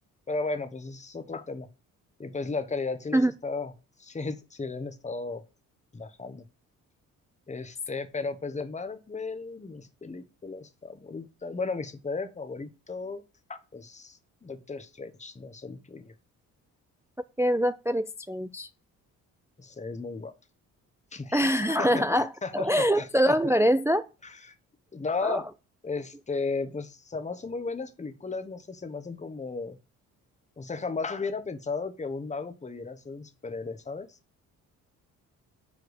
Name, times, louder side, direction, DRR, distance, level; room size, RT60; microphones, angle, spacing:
voice 1, 0.3-1.7 2.2-3.7 4.0-5.4 5.9-6.5 7.5-13.2 13.5-16.1 19.6-20.3 21.1-23.4 24.2-24.5 24.9-25.5 25.8-29.8 30.6-34.2, left 4 dB, 15° left, 1.0 m, -35 dB
voice 2, 17.4-18.7 21.3-22.3 22.5-24.1 25.2-25.4, equal, 5° right, 0.3 m, -24 dB
7.1 x 4.7 x 6.4 m
hypercardioid pair, 45°, 43 cm